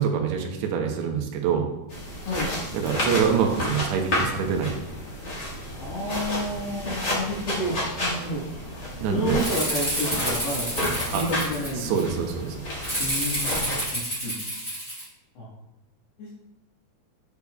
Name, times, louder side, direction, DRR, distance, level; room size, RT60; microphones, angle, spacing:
voice 1, 0.0-1.7 2.7-4.7 9.0-9.4 11.1-11.2 11.8-12.6, right 7 dB, 80° right, 3 dB, 2.9 m, -25 dB
sound 1, 1.9-13.8, left 1 dB, 40° left, 1.5 m, -31 dB
voice 2, 5.8-8.4 9.0-10.7 11.1-12.1 13.0-14.3 15.4-15.5 16.2-16.3, left 1 dB, 75° left, -8 dB, 3.4 m, -30 dB
Rattle (instrument), 9.4-12.0 12.8-15.0, right 1 dB, 5° left, 1.6 m, -29 dB
8.3 x 8.2 x 2.3 m, 0.98 s
omnidirectional pair, 4.9 m